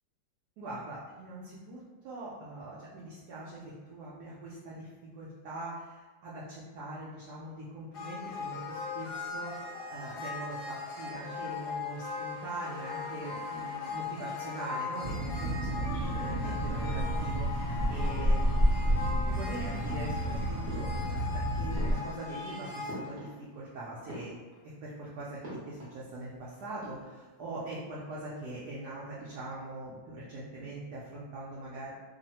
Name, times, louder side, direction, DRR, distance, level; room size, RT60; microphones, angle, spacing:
voice 1, 0.6-4.9 5.1-9.6 9.9-18.5 18.9-24.3 24.6-31.9, right 2 dB, 70° right, -7 dB, 1.0 m, -42 dB
sound 1, 7.9-22.9, left 4 dB, 70° left, 1.1 m, -39 dB
sound 2, 15.0-22.0, equal, 25° right, 0.9 m, -30 dB
sound 3, 20.6-21.4 21.7-23.7 24.0-24.8 25.4-26.0 26.3-26.4 26.7-27.4, equal, 45° right, 0.9 m, -45 dB
3.1 x 2.0 x 2.7 m, 1.3 s
omnidirectional pair, 2.1 m